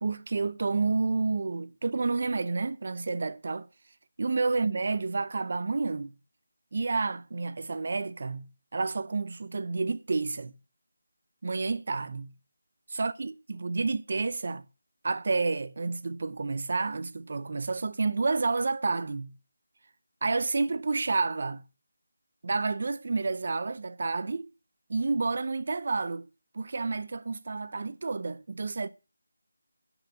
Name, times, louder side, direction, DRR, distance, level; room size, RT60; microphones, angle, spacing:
voice 1, 0.0-3.7 4.2-6.1 6.7-8.5 8.7-10.5 11.4-12.3 12.9-14.6 15.0-19.3 20.2-21.6 22.4-24.5 24.9-26.2 26.5-28.9, right 3 dB, 50° right, 0.8 m, -30 dB
9.1 x 6.0 x 7.8 m
figure-of-eight pair, 170°, 0 cm